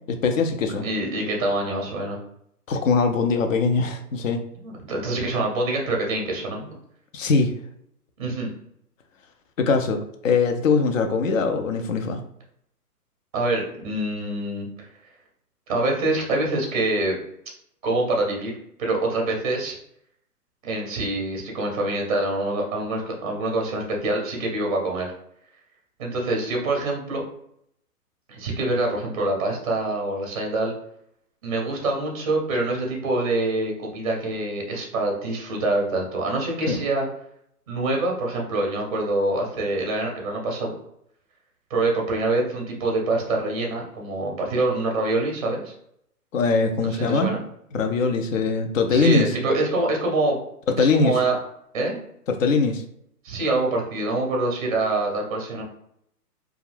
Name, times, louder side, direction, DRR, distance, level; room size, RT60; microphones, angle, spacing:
voice 1, 0.1-0.8 2.7-4.4 7.1-7.5 9.6-12.2 36.7-36.8 46.3-47.4 47.7-49.4 50.7-51.2 52.3-52.8, left 4 dB, 55° left, 6 dB, 0.6 m, -21 dB
voice 2, 0.8-2.2 4.6-6.7 8.2-8.5 13.3-14.9 15.7-17.1 17.8-18.5 18.8-19.8 20.6-25.1 26.0-27.2 28.3-30.7 31.4-37.1 37.7-40.7 41.7-45.7 46.8-47.4 48.9-50.4 50.8-51.4 51.7-52.0 53.2-55.6, right 2 dB, 25° right, 1 dB, 0.6 m, -25 dB
2.4 x 2.3 x 3.2 m, 0.72 s
hypercardioid pair, 140°, 48 cm